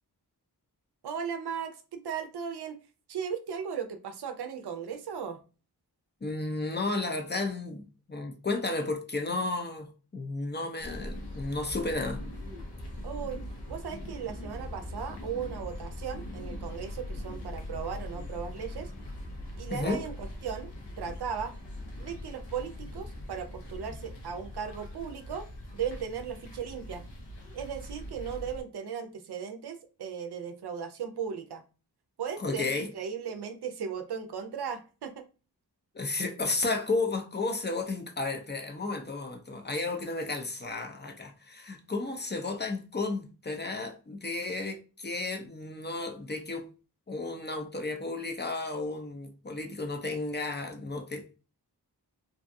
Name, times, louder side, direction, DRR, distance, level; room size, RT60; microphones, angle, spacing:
voice 1, 1.0-2.8 3.1-5.4 13.0-13.4 13.7-18.9 19.6-20.7 21.0-21.5 22.0-25.5 25.7-27.0 27.5-31.6 32.2-35.2, right 7 dB, 75° right, 0.5 m, -37 dB
voice 2, 6.2-12.2 19.7-20.0 32.4-32.9 35.9-46.7 47.1-51.3, left 3 dB, 25° left, 0.4 m, -33 dB
sound 1, 10.8-28.6, left 1 dB, 90° left, 0.7 m, -41 dB
2.6 x 2.3 x 2.6 m
wide cardioid pair, 70°, 40 cm